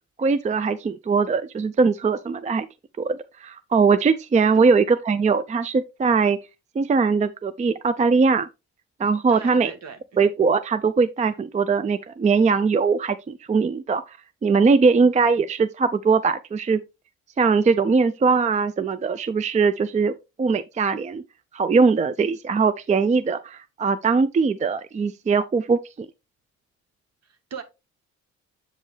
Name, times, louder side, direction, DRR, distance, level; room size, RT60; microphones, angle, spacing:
voice 1, 0.2-2.7 3.0-6.4 6.8-8.5 9.0-9.7 10.2-14.2 14.4-16.8 17.4-20.1 20.4-21.2 21.5-25.8, right 4 dB, 25° right, 0.4 m, -21 dB
voice 2, 9.3-10.2 27.3-27.6, right 5 dB, 60° right, 1.5 m, -37 dB
7.8 x 5.2 x 3.2 m
cardioid pair, 90°, 30 cm